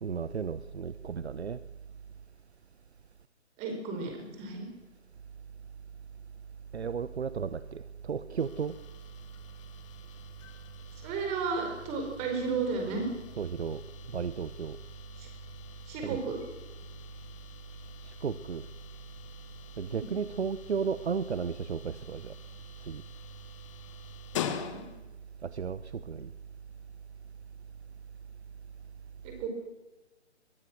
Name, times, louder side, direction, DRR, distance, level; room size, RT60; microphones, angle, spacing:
voice 1, 0.0-1.6 6.7-8.7 13.4-13.8 14.1-14.8 16.0-16.2 18.2-18.6 19.8-22.3 22.9-23.0 25.4-26.3, right 6 dB, 65° right, 14 dB, 1.0 m, -34 dB
voice 2, 3.6-4.7 11.0-13.1 15.2-15.3 15.9-16.4 19.9-20.2 24.3-24.9 29.2-29.5, right 4 dB, 20° right, 3 dB, 4.7 m, -34 dB
sound 1, 8.4-25.2, left 9 dB, 25° left, 1.4 m, -45 dB
23.0 x 20.5 x 6.3 m, 1.1 s
figure-of-eight pair, 145°, 36 cm